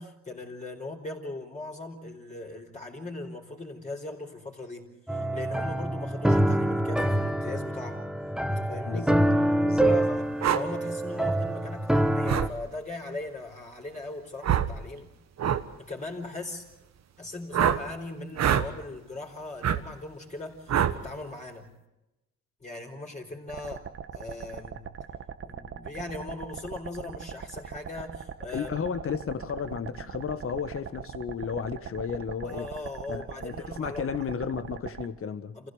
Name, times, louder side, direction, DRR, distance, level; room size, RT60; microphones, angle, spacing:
voice 1, 0.0-8.1 8.5-9.1 9.8-10.3 10.5-15.1 15.9-16.6 17.2-21.7 22.6-23.8 24.1-24.9 25.4-28.7 32.4-34.2 35.5-35.7, left 2 dB, 25° left, 4.6 m, -39 dB
sound 1, 5.1-12.5, right 1 dB, ahead, 1.1 m, -26 dB
voice 2, 8.8-9.9 28.5-32.7 33.1-35.5, left 6 dB, 45° left, 1.7 m, -33 dB
sound 2, 10.4-10.6 12.3-12.5 14.4-14.7 15.4-15.6 17.5-17.8 18.4-18.7 19.6-19.8 20.7-21.0, right 9 dB, 60° right, 1.4 m, -24 dB
sound 3, 23.5-35.1, right 7 dB, 45° right, 1.3 m, -41 dB
27.5 x 16.0 x 8.1 m
cardioid pair, 90°, 30 cm